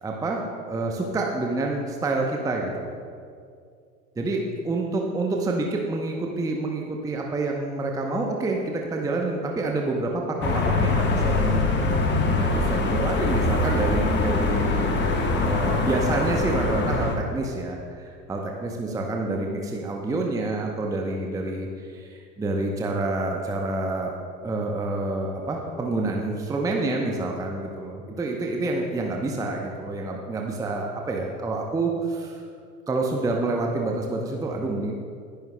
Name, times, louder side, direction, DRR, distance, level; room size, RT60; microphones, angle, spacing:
voice 1, 0.0-2.9 4.2-11.6 12.3-14.9 15.4-24.1 24.4-32.4 32.9-34.9, right 2 dB, 5° right, 1 dB, 0.8 m, -28 dB
sound 1, 10.4-17.2, left 3 dB, 25° left, 1.3 m, -23 dB
19.5 x 11.5 x 2.2 m, 2.2 s
figure-of-eight pair, 85°, 47 cm